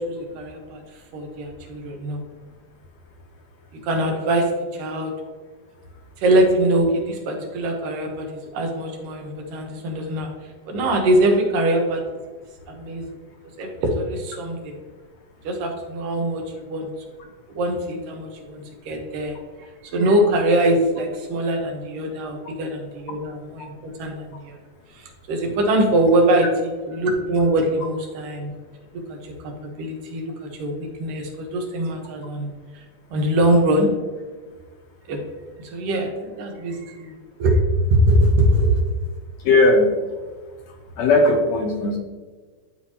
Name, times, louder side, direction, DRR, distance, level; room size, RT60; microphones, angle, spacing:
voice 1, 0.1-0.8 1.1-2.2 3.9-4.5 4.7-5.1 6.2-8.3 8.5-10.3 10.7-12.0 12.7-13.0 13.6-14.8 15.4-16.4 16.7-16.9 17.5-19.4 19.9-23.7 24.0-24.6 25.0-28.5 29.1-30.3 30.6-32.5 33.1-33.9 35.1-35.2 35.6-37.6 37.9-38.7, right 1 dB, 90° right, 1 dB, 2.9 m, -22 dB
voice 2, 39.5-39.9 41.0-42.0, left 2 dB, 70° left, 1 dB, 1.8 m, -17 dB
11.5 x 4.4 x 2.9 m, 1.4 s
omnidirectional pair, 3.7 m